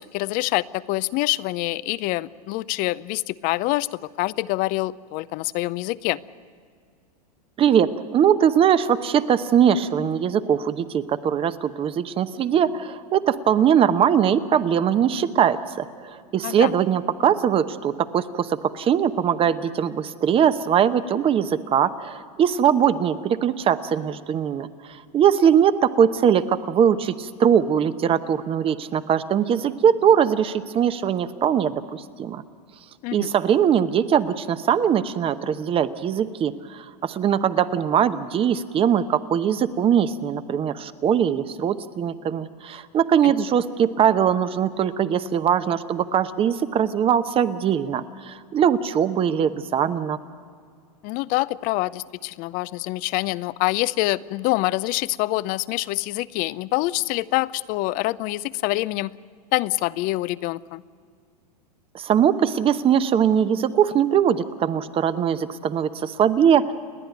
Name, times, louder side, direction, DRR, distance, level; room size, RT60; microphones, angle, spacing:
voice 1, 0.0-6.2 16.4-16.7 33.0-33.3 43.2-43.3 51.0-59.1 59.5-60.8, left 19 dB, 45° left, 19 dB, 0.6 m, -26 dB
voice 2, 7.6-32.4 33.1-50.2 61.9-66.7, right 8 dB, 25° right, 12 dB, 0.9 m, -21 dB
30.0 x 10.5 x 9.2 m, 2.2 s
hypercardioid pair, 110°, 21 cm